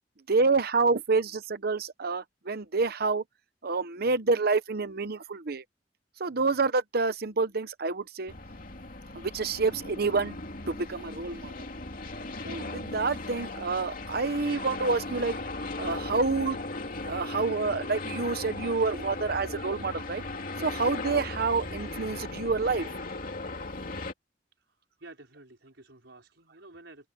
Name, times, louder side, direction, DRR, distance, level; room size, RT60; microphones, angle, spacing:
voice 1, 0.3-3.2 3.6-5.6 6.2-8.3 9.1-10.4 10.7-11.5 12.4-15.3 15.8-16.6 17.0-20.2 20.6-22.9, right 4 dB, 60° right, 0.9 m, -28 dB
sound 1, 8.3-24.1, left 2 dB, 50° left, 2.7 m, -37 dB
voice 2, 24.6-27.1, right 2 dB, 85° right, 4.7 m, -51 dB
open air
head